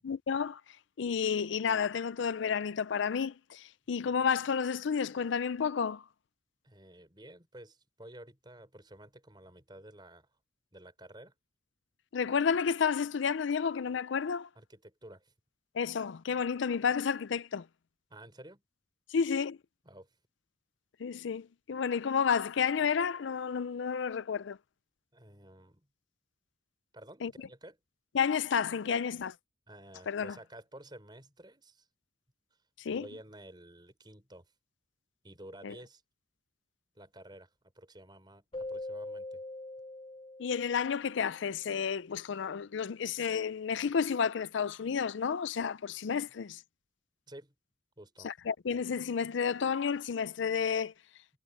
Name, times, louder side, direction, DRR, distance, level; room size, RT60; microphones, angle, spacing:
voice 1, 0.0-0.6 1.0-6.0 12.1-14.5 15.7-17.7 19.1-19.6 21.0-24.6 27.2-27.3 28.1-29.4 30.1-30.4 32.8-33.1 35.6-35.7 40.4-46.6 48.2-50.9, left 6 dB, 75° left, 0.4 m, -31 dB
voice 2, 6.6-10.3 10.7-11.3 14.6-15.3 18.1-18.6 19.8-20.1 25.1-25.9 26.9-27.8 29.7-31.9 32.9-34.5 35.2-36.0 37.0-37.5 37.8-39.4 47.3-47.5 48.0-48.3, right 1 dB, 25° right, 5.2 m, -52 dB
Keyboard (musical), 38.5-41.3, left 2 dB, 25° left, 0.7 m, -42 dB
head